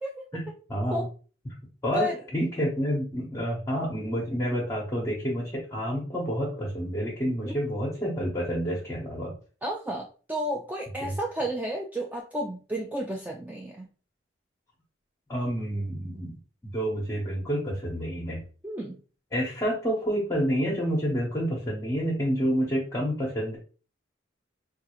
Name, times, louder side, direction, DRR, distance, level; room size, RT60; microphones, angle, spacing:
voice 1, 0.3-1.1 1.4-1.5 1.8-9.3 11.0-11.1 15.3-16.4 16.7-18.4 19.3-23.6, equal, 20° left, -5 dB, 0.9 m, -29 dB
voice 2, 9.6-13.9 18.6-19.0, equal, 10° right, 0 dB, 0.3 m, -32 dB
3.8 x 2.3 x 3.0 m, 0.38 s
head